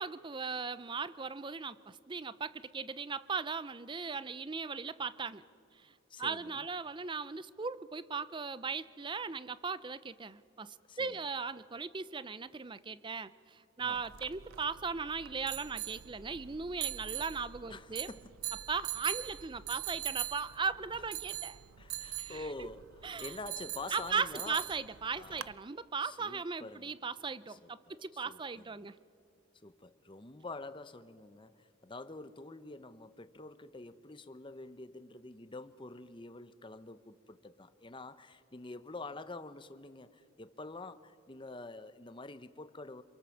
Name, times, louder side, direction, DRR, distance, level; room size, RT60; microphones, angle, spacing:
voice 1, 0.0-5.4 5.8-5.9 6.2-18.1 18.7-21.6 22.2-22.7 23.0-23.3 23.9-29.0, right 5 dB, 25° right, 0.5 m, -38 dB
voice 2, 6.1-6.7 10.9-11.2 13.8-14.0 17.7-18.3 21.8-22.9 23.2-24.6 25.1-25.5 26.0-26.9 27.5-28.9 29.6-43.0, left 2 dB, 25° left, 0.8 m, -47 dB
sound 1, 14.0-25.5, right 13 dB, 90° right, 0.6 m, -42 dB
27.0 x 24.0 x 7.2 m
head